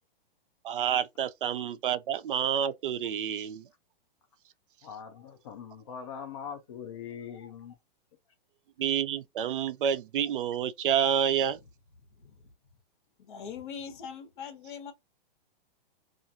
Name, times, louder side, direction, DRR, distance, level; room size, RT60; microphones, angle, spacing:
voice 1, 0.6-3.7 8.8-11.6, right 9 dB, 65° right, 0.5 m, -28 dB
voice 2, 4.8-7.8, left 7 dB, 30° left, 0.4 m, -42 dB
voice 3, 12.2-12.5 13.2-14.9, left 7 dB, 55° left, 1.1 m, -42 dB
2.5 x 2.4 x 2.7 m
hypercardioid pair, 170°, 29 cm